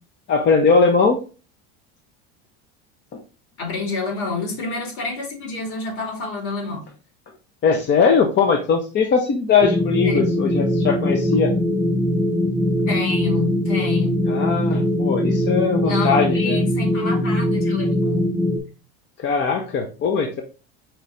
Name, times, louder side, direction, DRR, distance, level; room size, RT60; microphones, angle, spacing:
voice 1, 0.3-1.2 3.1-3.2 7.6-11.5 14.3-16.6 19.2-20.4, left 5 dB, 35° left, 4 dB, 0.7 m, -20 dB
voice 2, 3.6-6.9 10.0-10.2 12.9-14.2 15.8-18.2, left 3 dB, 65° left, 2 dB, 2.3 m, -29 dB
sound 1, 9.6-18.6, left 1 dB, ahead, 0.5 m, -21 dB
4.5 x 3.1 x 3.8 m, 0.34 s
supercardioid pair, 125°, 31 cm